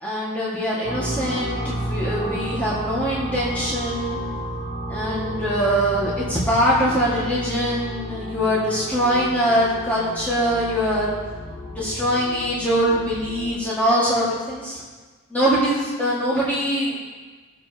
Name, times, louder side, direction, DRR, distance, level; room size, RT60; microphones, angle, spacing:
voice 1, 0.0-4.2 4.9-11.1 11.7-14.8 15.3-17.0, equal, 5° left, -9 dB, 1.8 m, -23 dB
sound 1, 0.8-13.5, right 1 dB, 75° left, 2.8 m, -32 dB
18.5 x 7.2 x 2.9 m, 1.4 s
head